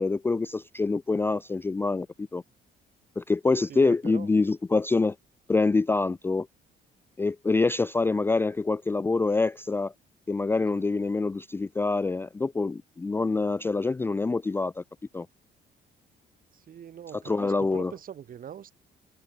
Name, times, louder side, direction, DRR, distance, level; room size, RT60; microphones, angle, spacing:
voice 1, 0.0-2.4 3.2-5.2 5.5-6.5 7.2-9.9 10.3-14.8 15.1-15.3 17.2-17.9, left 3 dB, 10° left, 0.4 m, -26 dB
voice 2, 3.7-4.3 10.7-10.8 16.5-18.7, right 9 dB, 50° right, 4.1 m, -42 dB
cardioid pair, 125°, 19 cm